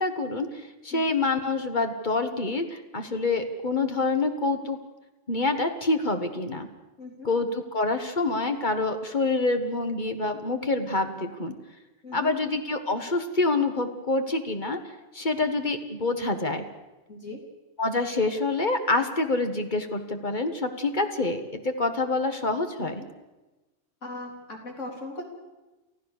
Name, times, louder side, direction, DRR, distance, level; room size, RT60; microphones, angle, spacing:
voice 1, 0.0-4.8 5.3-6.7 7.2-11.5 12.1-14.8 15.1-16.6 17.8-23.0, left 3 dB, 40° left, 7 dB, 1.7 m, -27 dB
voice 2, 7.0-7.3 12.0-12.3 17.1-17.4 22.8-23.1 24.0-25.2, left 2 dB, 75° left, 1 dB, 4.0 m, -39 dB
29.5 x 14.5 x 6.7 m, 1.1 s
omnidirectional pair, 1.3 m